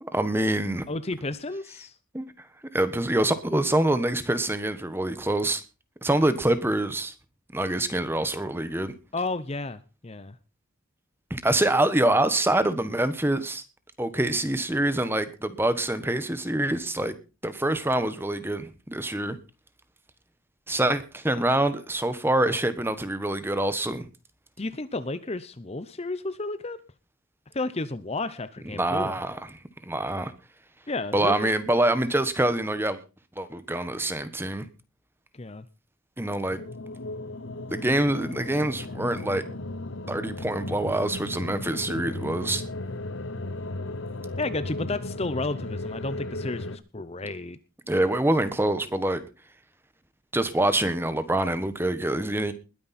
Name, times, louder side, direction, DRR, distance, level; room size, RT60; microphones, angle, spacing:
voice 1, 0.0-0.8 2.1-2.5 2.7-5.6 6.0-7.1 7.5-8.9 11.3-13.6 14.0-17.1 17.4-19.4 20.7-24.1 28.6-29.5 29.8-30.3 31.1-33.0 33.4-34.7 36.2-36.6 37.7-39.4 40.1-42.6 47.9-49.2 50.3-52.5, right 1 dB, 10° right, 12 dB, 1.1 m, -25 dB
voice 2, 0.9-2.0 9.1-10.4 24.6-26.8 27.5-29.2 30.9-31.5 35.3-35.7 44.4-47.6, left 2 dB, 30° left, 13 dB, 0.7 m, -32 dB
sound 1, 36.5-46.8, left 2 dB, 60° left, 1.0 m, -35 dB
20.5 x 9.6 x 4.3 m, 0.33 s
head